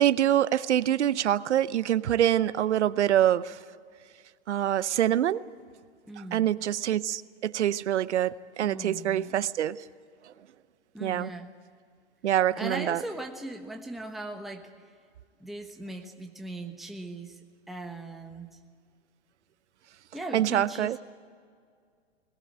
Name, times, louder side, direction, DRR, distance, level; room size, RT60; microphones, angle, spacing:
voice 1, 0.0-3.6 4.5-5.4 6.3-9.8 11.0-11.3 12.2-13.0 20.3-21.0, right 11 dB, 80° right, 17 dB, 0.8 m, -25 dB
voice 2, 6.1-6.5 8.6-9.4 10.9-11.5 12.6-15.0 15.4-18.5 20.1-21.0, right 2 dB, ahead, 3 dB, 1.2 m, -39 dB
20.5 x 18.5 x 8.9 m, 2.1 s
hypercardioid pair, 130°, 34 cm